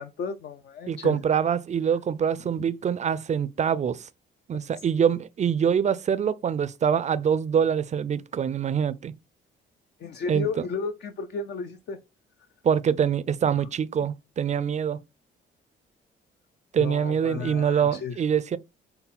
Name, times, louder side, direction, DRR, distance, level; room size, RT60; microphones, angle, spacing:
voice 1, 0.0-1.2 2.6-2.7 10.0-12.0 13.5-13.7 16.8-18.2, left 5 dB, 60° left, 0.5 m, -34 dB
voice 2, 0.9-4.1 4.5-9.1 10.3-10.5 12.6-15.0 16.7-18.6, right 7 dB, 35° right, 0.4 m, -24 dB
5.4 x 2.2 x 4.1 m
cardioid pair, 90°, 20 cm